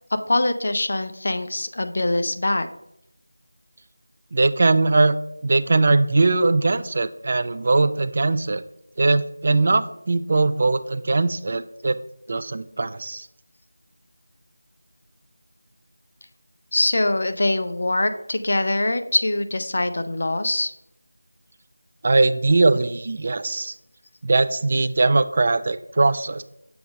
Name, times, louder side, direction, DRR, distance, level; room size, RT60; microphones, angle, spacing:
voice 1, 0.3-2.7 16.7-20.7, left 2 dB, 50° left, 9 dB, 0.5 m, -23 dB
voice 2, 4.3-5.2 5.4-8.6 9.0-12.0 12.3-13.3 22.0-23.7 24.2-26.4, right 3 dB, 35° right, 12 dB, 0.3 m, -20 dB
6.9 x 3.2 x 5.0 m, 0.78 s
figure-of-eight pair, 170°, 0 cm